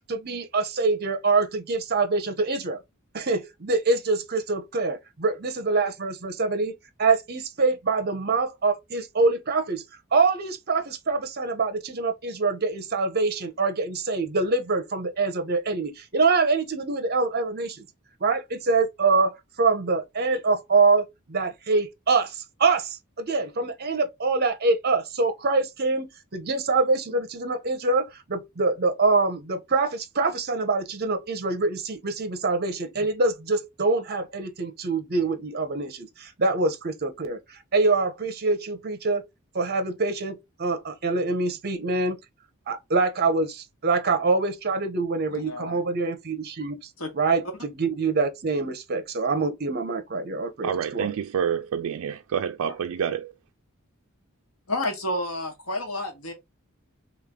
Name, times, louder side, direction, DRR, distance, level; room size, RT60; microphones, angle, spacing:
voice 1, 0.1-2.8 3.1-6.7 7.0-9.8 10.1-17.8 18.2-39.2 39.5-42.2 42.7-46.8 47.1-51.1, right 3 dB, 50° right, 0.9 m, -25 dB
voice 2, 45.3-45.8 47.0-47.1 52.6-52.8 54.7-56.3, left 1 dB, 85° left, 1.5 m, -30 dB
voice 3, 50.6-53.3, right 8 dB, 75° right, 0.3 m, -28 dB
3.3 x 3.1 x 3.6 m
head